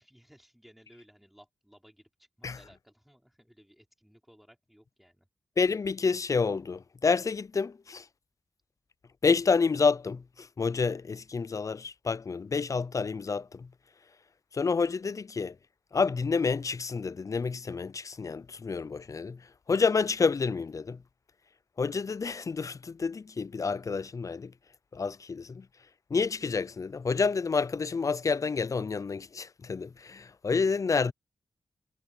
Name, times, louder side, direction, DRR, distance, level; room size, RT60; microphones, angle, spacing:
voice 1, 0.0-5.3, equal, ahead, 5.5 m, -59 dB
voice 2, 5.6-8.1 9.2-13.7 14.5-15.6 15.9-21.0 21.8-24.5 24.9-25.7 26.1-31.1, left 5 dB, 50° left, 0.6 m, -29 dB
cardioid pair, 50°, 7 cm